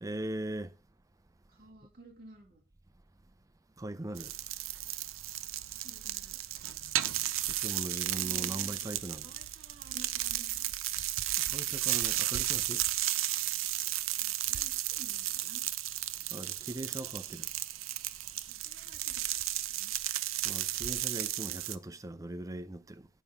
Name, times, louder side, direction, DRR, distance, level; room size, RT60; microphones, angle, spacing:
voice 1, 0.0-0.7 3.8-4.4 7.5-9.3 11.5-12.8 16.3-17.5 20.4-23.1, right 1 dB, 15° right, 0.4 m, -40 dB
voice 2, 1.5-2.6 5.8-6.4 8.2-10.7 11.5-11.7 14.2-15.6 18.5-19.9, right 2 dB, 50° right, 2.2 m, -55 dB
sound 1, 4.2-21.8, right 14 dB, 85° right, 0.5 m, -34 dB
9.2 x 5.4 x 5.7 m
head